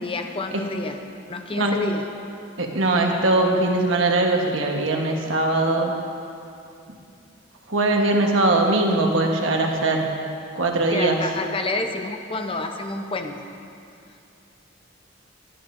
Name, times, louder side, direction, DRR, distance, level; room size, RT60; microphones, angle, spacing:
voice 1, 0.0-1.0 1.3-2.0 10.9-13.4, left 3 dB, 30° left, 5 dB, 0.7 m, -29 dB
voice 2, 2.6-5.9 7.7-10.1 10.5-11.2, right 2 dB, 80° right, 1 dB, 1.3 m, -21 dB
20.5 x 9.6 x 2.6 m, 2.6 s
head